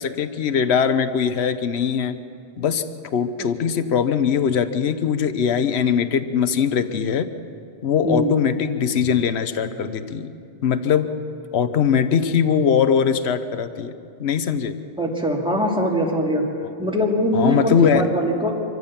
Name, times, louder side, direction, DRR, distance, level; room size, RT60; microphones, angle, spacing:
voice 1, 0.0-2.2 2.6-2.8 3.1-7.3 7.8-10.3 10.6-11.1 11.5-13.9 14.2-14.8 17.3-18.1, left 7 dB, 70° left, 10 dB, 1.1 m, -21 dB
voice 2, 15.0-16.4 16.8-18.5, equal, 5° right, -1 dB, 2.4 m, -22 dB
25.5 x 15.0 x 7.3 m, 2.5 s
omnidirectional pair, 1.1 m